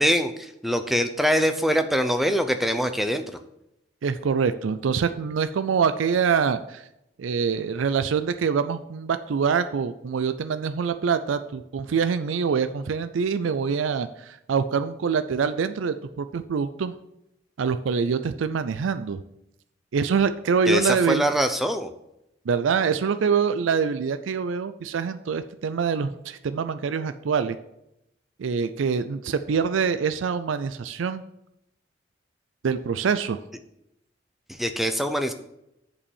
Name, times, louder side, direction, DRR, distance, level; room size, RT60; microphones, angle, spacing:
voice 1, 0.0-3.2 20.7-21.9 34.5-35.3, equal, ahead, 8 dB, 0.5 m, -23 dB
voice 2, 4.0-6.8 7.2-16.9 17.6-19.2 19.9-21.2 22.5-27.6 28.4-31.2 32.6-33.4, right 6 dB, 85° right, 11 dB, 0.4 m, -25 dB
6.9 x 5.4 x 7.1 m, 0.84 s
head